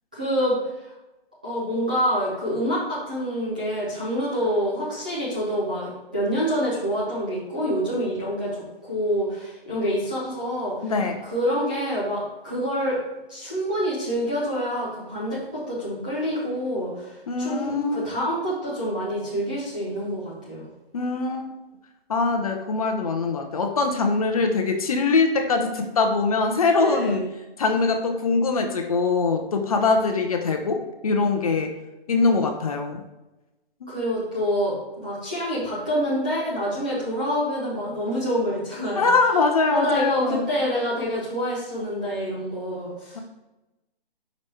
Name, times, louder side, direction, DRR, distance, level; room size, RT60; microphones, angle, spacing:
voice 1, 0.1-0.6 0.8-0.9 1.4-10.9 11.2-13.0 13.3-20.7 26.8-27.3 33.9-39.1 39.7-43.2, equal, 10° right, -10 dB, 0.4 m, -27 dB
voice 2, 10.8-11.2 17.3-18.1 20.9-21.6 22.1-27.2 27.6-31.7 32.1-33.0 33.8-33.9 38.9-40.4, left 4 dB, 40° left, 5 dB, 0.7 m, -23 dB
5.2 x 4.7 x 4.2 m, 1.0 s
hypercardioid pair, 160°, 30 cm